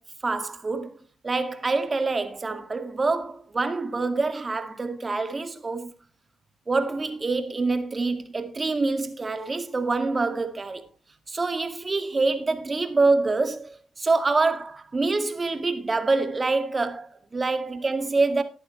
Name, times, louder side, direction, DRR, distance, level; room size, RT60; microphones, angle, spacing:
voice 1, 0.2-1.0 1.2-5.9 6.7-10.9 11.3-18.4, right 3 dB, 25° right, 2.1 m, -26 dB
14.0 x 11.0 x 3.2 m
cardioid pair, 90°, 0 cm